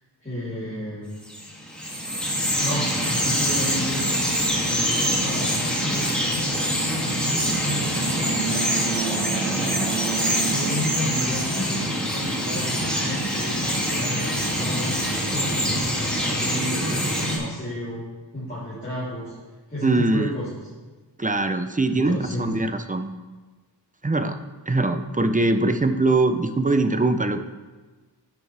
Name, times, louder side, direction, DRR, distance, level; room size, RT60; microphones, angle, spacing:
voice 1, 0.2-1.1 2.6-18.0 18.3-19.3 19.7-20.6 21.9-22.6, left 1 dB, 20° left, -11 dB, 3.5 m, -32 dB
Bird vocalization bird call bird song, 1.2-17.4, equal, ahead, 2.5 m, -24 dB
voice 2, 19.8-20.3 21.2-23.1 24.0-24.4 24.7-27.4, right 2 dB, 20° right, 8 dB, 0.6 m, -22 dB
10.5 x 9.0 x 3.4 m, 1.3 s
wide cardioid pair, 80°, 44 cm